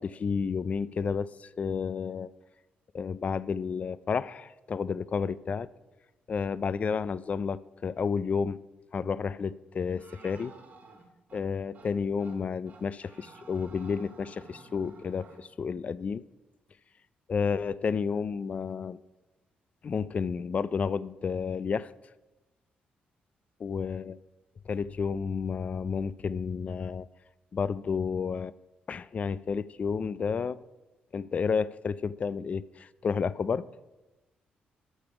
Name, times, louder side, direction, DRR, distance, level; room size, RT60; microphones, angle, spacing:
voice 1, 0.0-2.3 2.9-5.7 6.3-8.6 8.9-10.5 11.3-16.2 17.3-19.0 19.8-21.9 23.6-24.2 24.7-27.1 27.5-28.5 28.9-30.6 31.1-33.7, left 5 dB, 40° left, 0.4 m, -31 dB
sound 1, 10.0-11.4 11.7-11.9 12.2-12.4 12.7-15.4, right 4 dB, 55° right, 1.8 m, -52 dB
12.5 x 6.9 x 5.0 m
cardioid pair, 85°, 3 cm